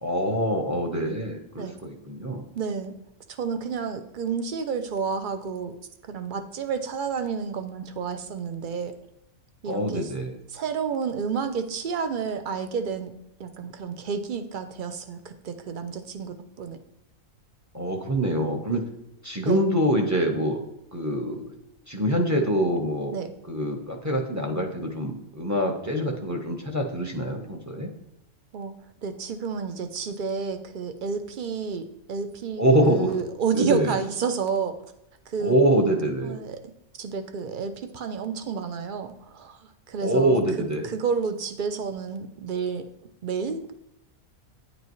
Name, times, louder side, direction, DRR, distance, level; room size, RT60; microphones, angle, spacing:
voice 1, 0.0-2.5 9.6-10.3 17.7-18.8 19.2-20.6 20.9-21.4 21.9-23.1 23.5-27.9 32.6-33.1 33.5-33.9 35.4-36.4 40.0-40.9, right 1 dB, 15° right, 1 dB, 1.0 m, -25 dB
voice 2, 2.5-2.9 3.4-5.7 6.1-8.9 9.6-10.1 10.5-13.1 13.4-16.8 19.4-19.6 23.1-23.3 28.5-28.8 29.0-34.8 35.3-35.6 36.2-36.6 37.0-39.6 39.9-42.8 43.2-43.7, right 6 dB, 45° right, 8 dB, 0.7 m, -30 dB
10.0 x 7.9 x 3.2 m, 0.81 s
omnidirectional pair, 1.5 m